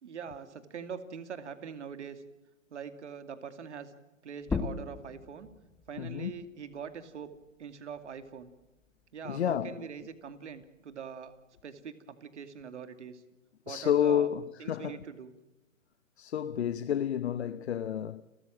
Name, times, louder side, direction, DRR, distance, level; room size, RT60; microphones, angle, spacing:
voice 1, 0.0-2.2 2.7-3.9 4.2-5.5 5.9-7.3 7.6-8.5 9.1-11.3 11.6-13.2 13.7-14.3 14.6-15.3, right 7 dB, 60° right, 2.6 m, -43 dB
sound 1, 4.4-9.6 10.0-11.8, left 4 dB, 5° left, 0.8 m, -41 dB
voice 2, 6.0-6.3 9.2-9.9 13.7-15.0 16.2-18.2, left 9 dB, 55° left, 0.9 m, -30 dB
30.0 x 14.0 x 7.6 m
figure-of-eight pair, 130°, 40 cm